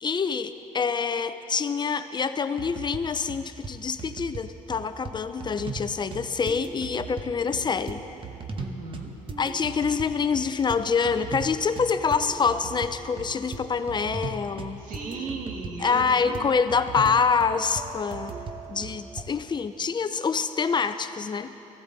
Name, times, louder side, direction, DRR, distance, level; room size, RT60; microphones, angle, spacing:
voice 1, 0.0-8.0 9.4-14.8 15.8-18.3 18.7-21.5, left 5 dB, 35° left, 10 dB, 0.5 m, -26 dB
sound 1, 2.6-3.0 3.3-3.7 4.0-4.4 4.7-5.1 5.4-5.8 6.1-19.2, right 4 dB, 40° right, 1.0 m, -38 dB
voice 2, 8.6-9.1 14.8-16.5, right 3 dB, 85° right, 0 dB, 2.0 m, -36 dB
18.5 x 15.5 x 4.1 m, 2.9 s
cardioid pair, 115°, 14 cm